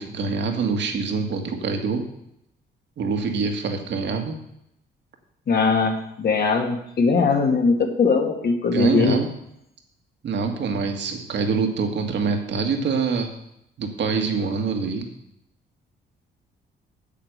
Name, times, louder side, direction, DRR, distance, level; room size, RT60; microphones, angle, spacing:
voice 1, 0.0-2.1 3.0-4.4 8.7-9.3 10.2-13.3 13.8-15.1, right 5 dB, 65° right, 4 dB, 1.9 m, -25 dB
voice 2, 5.5-9.2, left 4 dB, 55° left, 3 dB, 2.1 m, -20 dB
8.5 x 7.9 x 6.8 m, 0.79 s
cardioid pair, 90°, 20 cm